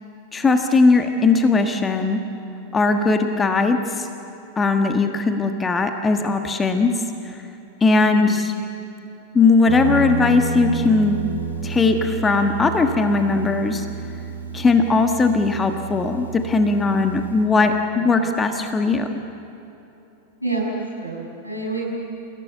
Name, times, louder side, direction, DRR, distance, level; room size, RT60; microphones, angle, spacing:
voice 1, 0.3-2.2 2.7-4.1 4.6-6.9 7.2-7.4 7.8-8.5 9.3-11.2 11.6-13.8 14.5-19.1, left 3 dB, 15° left, 6 dB, 1.4 m, -19 dB
Guitar, 9.7-17.5, right 3 dB, 75° right, 3.1 m, -30 dB
voice 2, 20.4-20.7 21.0-21.8, right 2 dB, 90° left, -2 dB, 6.7 m, -27 dB
29.5 x 17.5 x 7.9 m, 3.0 s
figure-of-eight pair, 90°, 0 cm